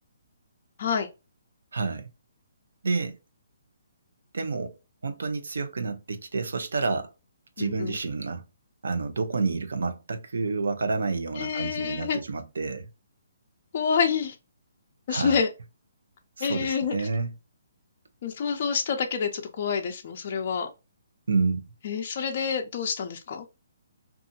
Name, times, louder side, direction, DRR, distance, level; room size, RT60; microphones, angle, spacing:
voice 1, 1.7-2.1 2.8-3.2 4.3-4.8 5.0-7.1 7.6-8.4 8.8-12.9 15.1-15.4 16.4-17.3 21.3-21.7, right 4 dB, 80° right, 0.6 m, -29 dB
voice 2, 7.6-8.0 11.4-12.2 13.7-14.4 15.1-15.5 16.4-16.9 18.2-20.7 21.8-23.5, left 6 dB, 35° left, 0.4 m, -27 dB
2.7 x 2.4 x 2.6 m
hypercardioid pair, 175°, 0 cm